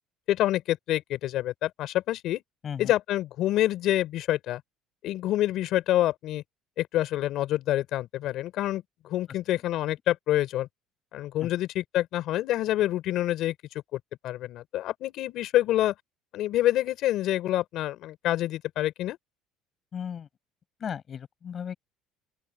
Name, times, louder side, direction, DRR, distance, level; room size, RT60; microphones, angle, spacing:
voice 1, 0.3-2.4 2.8-4.6 5.0-6.4 6.8-10.7 11.1-13.5 13.9-15.9 16.3-19.2, left 14 dB, 55° left, 4.9 m, -27 dB
voice 2, 2.6-2.9 11.4-11.5 19.9-20.3 20.8-21.7, left 8 dB, 30° left, 7.5 m, -35 dB
open air
cardioid pair, 155°, 0 cm